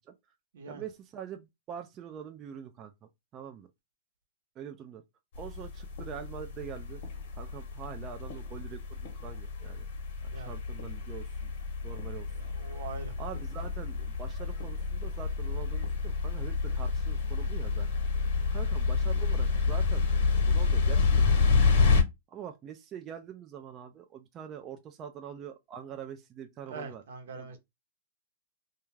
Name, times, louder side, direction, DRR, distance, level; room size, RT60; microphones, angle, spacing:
voice 1, 0.7-3.7 4.6-5.0 5.4-7.0 7.3-9.9 10.2-11.5 11.8-12.3 12.7-12.8 13.2-18.2 18.5-21.6 22.3-27.0 27.3-27.5, right 8 dB, 25° right, 0.3 m, -44 dB
sound 1, 5.3-22.0, left 4 dB, 60° left, 0.9 m, -29 dB
voice 2, 12.4-13.1 26.7-27.6, right 4 dB, 75° right, 0.8 m, -42 dB
2.3 x 2.3 x 3.1 m
hypercardioid pair, 140°, 0 cm